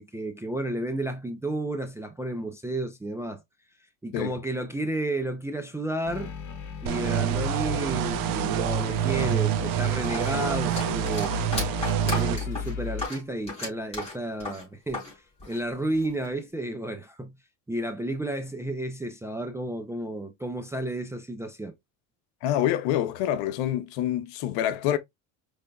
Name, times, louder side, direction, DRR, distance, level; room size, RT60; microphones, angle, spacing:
voice 1, 0.0-3.4 4.0-6.3 6.8-11.3 12.0-15.0 15.5-17.4 17.7-21.7, right 1 dB, 5° right, 0.3 m, -32 dB
sound 1, 6.0-13.1, left 6 dB, 45° left, 1.5 m, -36 dB
sound 2, 6.9-12.4, right 10 dB, 55° right, 0.7 m, -27 dB
sound 3, 10.0-15.1 15.4-16.2, left 2 dB, 15° left, 3.1 m, -35 dB
voice 2, 22.4-25.0, left 12 dB, 75° left, 0.8 m, -26 dB
5.1 x 3.3 x 2.2 m
cardioid pair, 135°, 42 cm